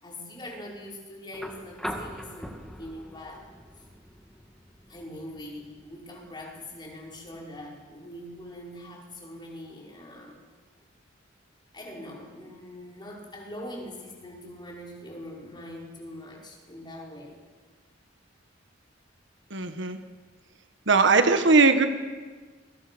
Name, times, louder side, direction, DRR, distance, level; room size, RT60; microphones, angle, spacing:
voice 1, 0.0-3.5 3.7-3.9 4.9-10.4 11.7-17.4 21.0-21.3, left 1 dB, 25° left, -2 dB, 5.4 m, -42 dB
sound 1, 1.3-9.4 10.8-10.9, equal, ahead, 2.0 m, -43 dB
voice 2, 19.5-20.0 20.9-21.9, right 3 dB, 65° right, 8 dB, 1.6 m, -19 dB
28.5 x 22.5 x 6.3 m, 1.5 s
head